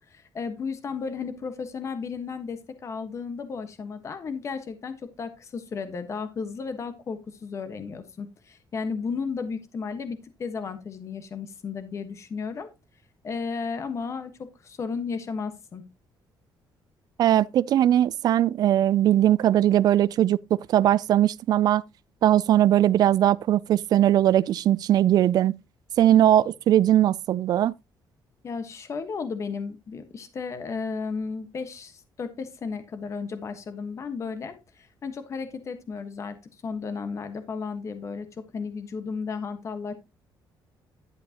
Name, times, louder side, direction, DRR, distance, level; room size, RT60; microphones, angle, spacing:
voice 1, 0.0-12.7 13.2-15.8 28.4-36.4 36.6-38.3 38.5-39.9, left 5 dB, 35° left, 1.3 m, -34 dB
voice 2, 17.2-20.4 20.7-21.8 22.2-25.5 26.0-27.7, right 12 dB, 55° right, 0.4 m, -20 dB
11.0 x 8.2 x 2.9 m
cardioid pair, 145°, 8 cm